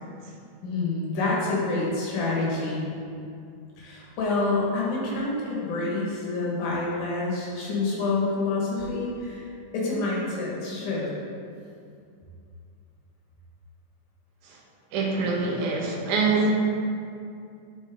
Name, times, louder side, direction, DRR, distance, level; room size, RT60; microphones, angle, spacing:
voice 1, 0.6-2.8 3.8-9.5 9.7-11.1, left 3 dB, 85° left, -5 dB, 3.0 m, -27 dB
voice 2, 14.9-16.5, right 3 dB, 85° right, -1 dB, 2.5 m, -24 dB
12.0 x 4.2 x 3.6 m, 2.4 s
omnidirectional pair, 3.4 m